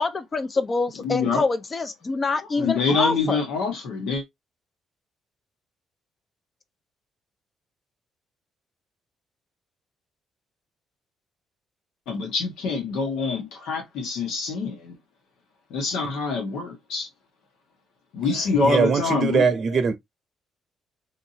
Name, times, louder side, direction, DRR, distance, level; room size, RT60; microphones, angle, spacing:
voice 1, 0.0-3.4, left 3 dB, 35° left, 0.7 m, -26 dB
voice 2, 1.0-1.4 2.6-4.2 12.1-15.0 15.7-17.1 18.1-19.5, left 4 dB, 90° left, 1.5 m, -25 dB
voice 3, 18.6-19.9, right 5 dB, 50° right, 0.6 m, -21 dB
3.7 x 2.7 x 2.8 m
cardioid pair, 90°, 0 cm